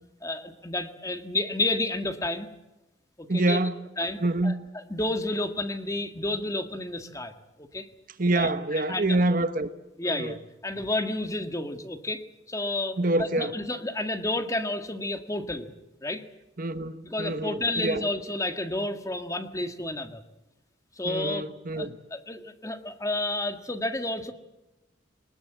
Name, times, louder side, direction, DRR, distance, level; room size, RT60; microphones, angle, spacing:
voice 1, 0.2-2.5 3.2-3.6 4.0-7.3 7.6-7.9 8.3-9.2 10.0-10.4 10.6-15.7 16.0-16.2 17.0-20.2 21.0-21.4 21.8-24.3, left 2 dB, 15° left, 1.7 m, -31 dB
voice 2, 3.3-3.8 4.2-4.7 8.2-9.7 10.1-10.3 13.0-13.5 16.6-18.0 21.0-22.0, right 2 dB, 45° right, 1.1 m, -26 dB
21.5 x 20.5 x 8.1 m
head